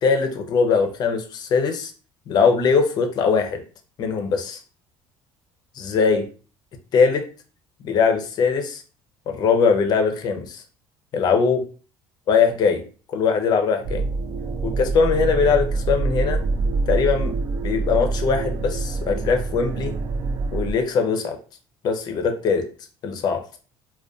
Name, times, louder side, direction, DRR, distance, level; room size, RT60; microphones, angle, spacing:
voice 1, 0.0-1.9 2.3-3.6 4.0-4.6 5.8-6.2 6.9-7.2 7.8-8.8 9.3-10.6 11.1-11.6 12.3-12.8 13.1-14.0 14.6-16.4 16.9-17.3 17.6-19.9 20.5-21.4 21.8-22.6 23.0-23.4, left 5 dB, 45° left, 5 dB, 0.5 m, -21 dB
sound 1, 13.8-20.7, right 3 dB, 45° right, 0.3 m, -25 dB
2.5 x 2.2 x 2.3 m, 0.38 s
cardioid pair, 120°, 10 cm